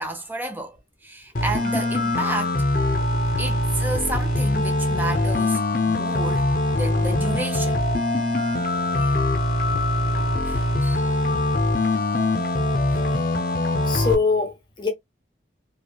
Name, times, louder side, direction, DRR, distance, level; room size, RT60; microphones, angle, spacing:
voice 1, 0.0-2.6 3.4-6.5 6.7-7.8 8.9-9.2 10.0-11.2 12.9-13.3, right 2 dB, 10° right, 0.6 m, -32 dB
sound 1, 1.4-14.2, left 2 dB, 50° left, 0.6 m, -22 dB
voice 2, 13.9-14.9, left 4 dB, 25° left, 1.0 m, -23 dB
3.1 x 2.3 x 2.4 m
head